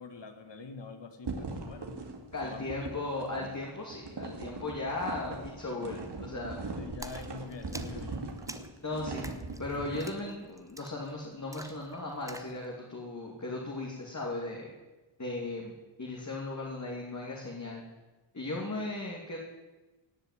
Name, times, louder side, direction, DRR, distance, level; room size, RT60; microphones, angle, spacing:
voice 1, 0.0-2.0 2.4-2.9 6.6-8.3, left 4 dB, 60° left, 7 dB, 2.1 m, -45 dB
sound 1, 1.2-10.2, right 3 dB, 55° right, 2.2 m, -40 dB
voice 2, 2.3-6.6 8.8-9.3 9.6-14.7 15.2-15.7 16.0-17.8 18.3-19.4, left 2 dB, 35° left, -2 dB, 2.8 m, -37 dB
Splash splatter, 7.0-12.6, right 1 dB, 5° right, 1.0 m, -48 dB
17.5 x 6.8 x 9.2 m, 1.2 s
wide cardioid pair, 90°, 49 cm